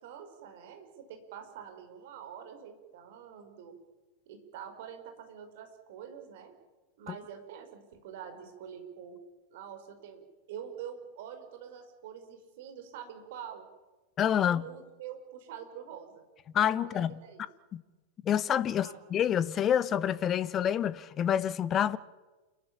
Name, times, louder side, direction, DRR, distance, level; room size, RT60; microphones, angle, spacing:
voice 1, 0.0-3.7 4.2-6.5 7.0-9.2 9.5-10.2 10.5-13.7 14.3-16.2 16.8-17.4 18.7-18.9, right 8 dB, 50° right, 5.0 m, -46 dB
voice 2, 14.2-14.7 16.5-17.2 17.7-17.8 18.2-22.0, left 9 dB, 30° left, 1.1 m, -27 dB
28.5 x 14.0 x 9.9 m
figure-of-eight pair, 90°, 0 cm